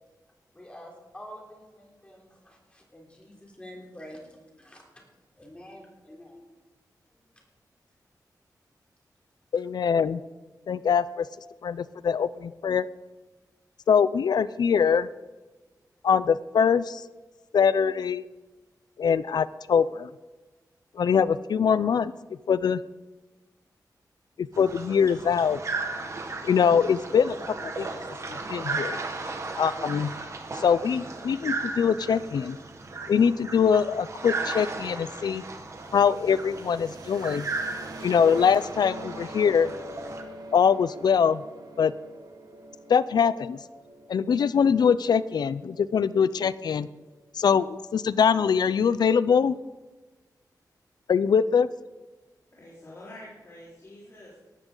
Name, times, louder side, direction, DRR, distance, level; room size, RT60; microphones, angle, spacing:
voice 1, 0.5-4.3 4.6-5.0 5.3-6.4, equal, 15° left, -1 dB, 3.5 m, -47 dB
voice 2, 9.5-10.2 10.7-11.3 11.6-12.9 13.9-15.1 16.0-17.0 17.5-18.2 19.0-20.1 21.0-22.1 22.5-22.8 24.4-25.6 26.4-27.4 27.6-27.9 28.3-29.0 29.6-30.1 30.5-32.6 33.1-35.4 35.9-37.5 38.0-39.7 40.5-41.4 41.8-41.9 42.9-43.6 44.1-46.9 47.3-49.6 51.1-51.7, left 7 dB, 75° left, 16 dB, 0.5 m, -23 dB
sound 1, 24.5-40.2, right 3 dB, 45° right, 1.6 m, -36 dB
sound 2, 35.7-47.4, right 1 dB, 65° right, 1.5 m, -45 dB
voice 3, 52.5-54.4, left 1 dB, 40° left, -8 dB, 4.4 m, -46 dB
18.0 x 13.5 x 3.9 m, 1.2 s
wide cardioid pair, 160°, 7 cm